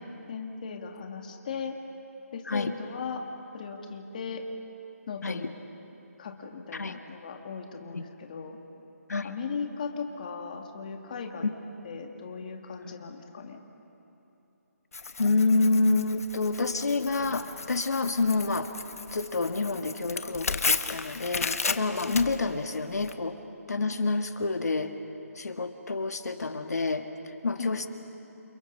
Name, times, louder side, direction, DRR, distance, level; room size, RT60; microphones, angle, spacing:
voice 1, 0.3-1.8 2.3-3.2 3.5-4.4 5.1-5.5 6.2-8.6 9.2-11.5 11.8-13.6 27.6-27.7, left 5 dB, 30° left, 3 dB, 2.2 m, -37 dB
voice 2, 2.4-2.8 5.2-5.5 6.7-7.0 7.9-8.0 9.1-9.3 12.8-12.9 15.2-18.7 19.1-23.4 23.7-25.0 25.3-27.9, left 3 dB, 85° left, 7 dB, 1.7 m, -28 dB
Tearing, 14.9-23.1, left 4 dB, 65° left, 1.4 m, -34 dB
29.0 x 29.0 x 5.5 m, 2.9 s
hypercardioid pair, 170°, 8 cm